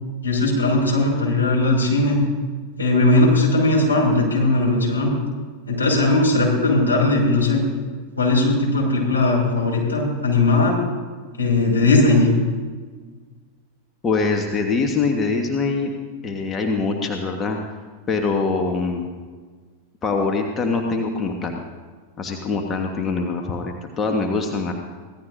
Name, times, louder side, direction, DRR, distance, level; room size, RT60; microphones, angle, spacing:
voice 1, 0.2-2.2 2.8-5.1 5.7-7.6 8.2-10.8 11.4-12.3, left 2 dB, 80° left, -3 dB, 6.1 m, -18 dB
voice 2, 14.0-15.9 16.2-17.6 18.1-19.1 20.0-21.6 22.2-24.7, left 4 dB, 20° left, 3 dB, 1.5 m, -23 dB
24.5 x 17.5 x 2.7 m, 1.5 s
figure-of-eight pair, 90°, 0 cm